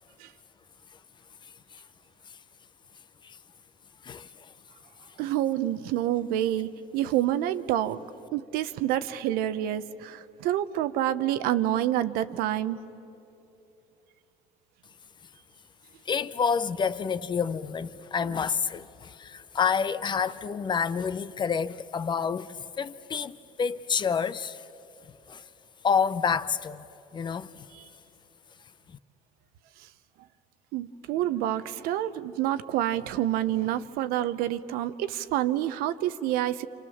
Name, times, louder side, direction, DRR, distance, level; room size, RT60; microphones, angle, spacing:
voice 1, 4.0-4.5 16.1-24.6 25.3-25.4 25.8-26.9 27.1-27.7, left 6 dB, 30° left, 0.7 m, -28 dB
voice 2, 5.2-8.0 8.3-12.8 27.7-27.9 30.7-36.7, right 12 dB, 70° right, 0.9 m, -28 dB
28.5 x 27.0 x 7.2 m
cardioid pair, 115°, 16 cm